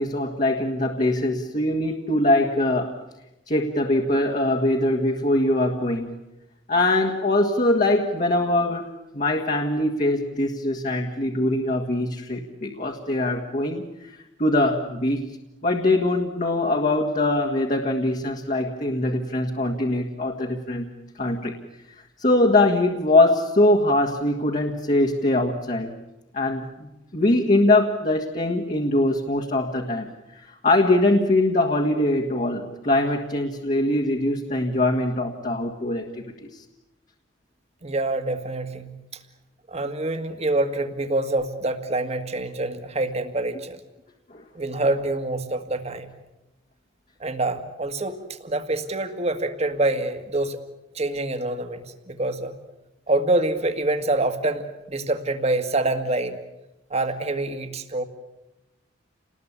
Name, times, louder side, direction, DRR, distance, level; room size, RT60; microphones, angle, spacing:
voice 1, 0.0-3.0 3.5-6.1 6.7-8.9 9.1-15.4 15.6-20.9 21.2-21.6 22.2-25.9 26.3-36.6 44.3-44.4, left 1 dB, 40° left, 1 dB, 1.8 m, -22 dB
voice 2, 37.8-39.0 39.7-43.8 44.6-46.1 47.2-50.6 51.0-52.6 53.1-56.4 56.9-58.0, right 2 dB, 35° right, 8 dB, 2.0 m, -26 dB
29.5 x 20.0 x 8.4 m, 0.96 s
head